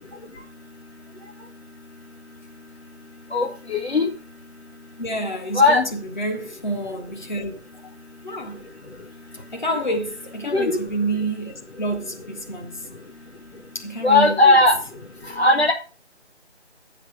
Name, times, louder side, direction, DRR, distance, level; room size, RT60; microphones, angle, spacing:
voice 1, 3.3-4.1 5.5-5.8 10.5-10.8 14.0-14.8 15.3-15.7, left 2 dB, 60° left, 1.5 m, -17 dB
voice 2, 5.0-7.9 8.2-8.7 9.3-12.9 13.7-14.6, right 1 dB, 40° left, 2.0 m, -29 dB
10.5 x 7.3 x 4.9 m
figure-of-eight pair, 165°, 35 cm